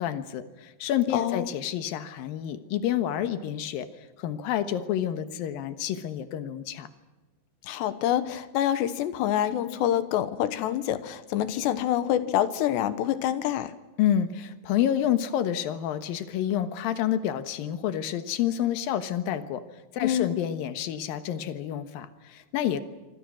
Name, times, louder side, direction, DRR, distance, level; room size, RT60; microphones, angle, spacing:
voice 1, 0.0-3.9 4.2-6.9 14.0-19.6 19.9-22.8, left 10 dB, 65° left, 10 dB, 2.8 m, -28 dB
voice 2, 1.1-1.5 7.6-13.7 20.0-20.4, left 11 dB, 85° left, 12 dB, 3.4 m, -26 dB
27.0 x 25.0 x 6.3 m, 1.2 s
omnidirectional pair, 4.8 m